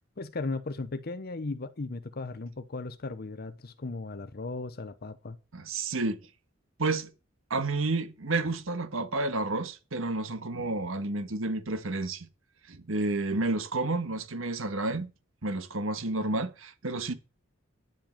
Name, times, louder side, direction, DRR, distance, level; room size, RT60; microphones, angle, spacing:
voice 1, 0.2-5.4, left 3 dB, 50° left, 0.8 m, -36 dB
voice 2, 5.5-6.2 6.8-7.1 7.5-12.3 12.7-15.1 15.4-17.1, right 2 dB, 85° right, 1.5 m, -30 dB
10.5 x 7.7 x 7.3 m
head